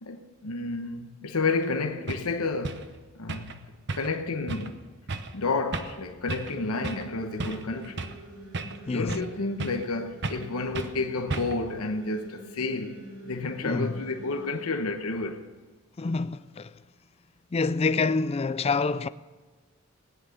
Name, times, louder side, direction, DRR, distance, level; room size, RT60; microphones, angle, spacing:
voice 1, 0.0-2.9 3.1-4.8 5.3-8.1 8.9-15.4, left 3 dB, 85° left, 1.1 m, -31 dB
sound 1, 1.6-1.7 2.1-2.3 2.6-2.9 3.3-3.6 3.9-4.2 4.5-4.7 5.1-5.3 5.7-6.0 6.3-6.6 6.8-7.1 7.4-8.2 8.5-9.3 9.6-9.9 10.2-10.5 10.7-11.0 11.3-11.7, right 3 dB, 50° right, 0.9 m, -34 dB
sound 2, 6.4-14.6, right 1 dB, 85° right, 4.7 m, -46 dB
voice 2, 8.9-9.2 13.6-14.0 16.0-16.7 17.5-19.1, left 4 dB, 25° left, 0.3 m, -27 dB
17.5 x 10.0 x 6.6 m
head